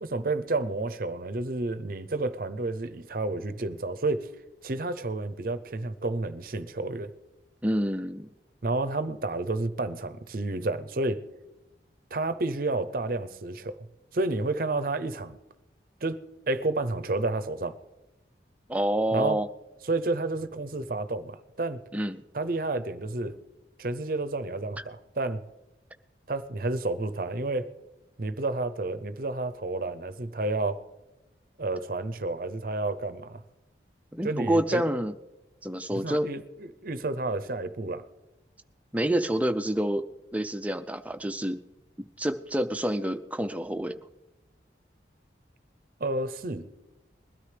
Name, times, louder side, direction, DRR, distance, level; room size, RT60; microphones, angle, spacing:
voice 1, 0.0-4.3 4.6-7.1 8.6-11.2 12.1-13.9 14.1-15.4 16.0-16.2 16.5-17.8 19.1-19.4 19.9-21.8 22.3-23.4 23.8-25.4 26.3-27.7 28.2-30.8 31.6-33.4 34.2-34.9 35.9-38.1 46.0-46.7, right 2 dB, 50° right, 11 dB, 0.6 m, -30 dB
voice 2, 7.6-8.3 18.7-19.5 21.9-22.2 34.1-35.2 35.6-36.3 38.9-40.1 40.3-41.6 42.0-44.0, right 1 dB, 10° right, 8 dB, 0.4 m, -28 dB
21.0 x 13.0 x 3.3 m, 1.0 s
head